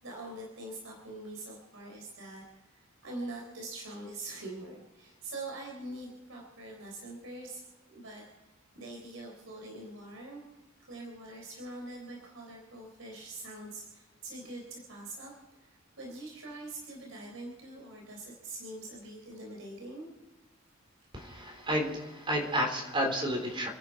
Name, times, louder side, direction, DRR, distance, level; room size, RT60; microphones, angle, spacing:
voice 1, 0.0-8.2 8.7-10.4 10.9-15.3 15.6-20.1, right 2 dB, 85° right, -1 dB, 3.7 m, -44 dB
voice 2, 21.1-23.7, equal, 25° right, 2 dB, 3.8 m, -31 dB
30.0 x 10.5 x 4.6 m, 1.1 s
head